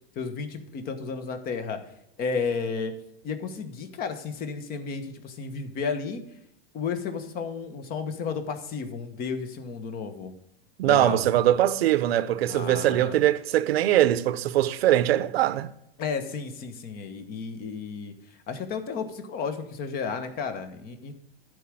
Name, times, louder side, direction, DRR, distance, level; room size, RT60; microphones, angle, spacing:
voice 1, 0.1-1.8 2.2-2.9 3.2-6.2 6.7-10.3 10.8-11.2 12.5-13.2 16.0-18.1 18.5-21.1, left 5 dB, 30° left, 1.2 m, -32 dB
voice 2, 10.8-15.7, right 13 dB, 80° right, 0.7 m, -22 dB
11.0 x 5.0 x 7.6 m
supercardioid pair, 145°, 30 cm